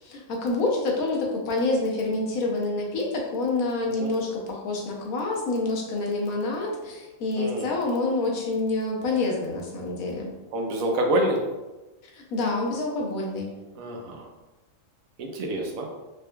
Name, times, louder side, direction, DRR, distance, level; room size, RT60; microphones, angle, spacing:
voice 1, 0.0-10.3 12.1-13.5, left 2 dB, 85° left, -1 dB, 1.2 m, -27 dB
voice 2, 7.4-7.7 10.5-11.4 13.8-14.3 15.2-15.9, right 1 dB, 75° right, 1 dB, 1.1 m, -27 dB
4.1 x 3.4 x 2.2 m, 1.1 s
omnidirectional pair, 1.5 m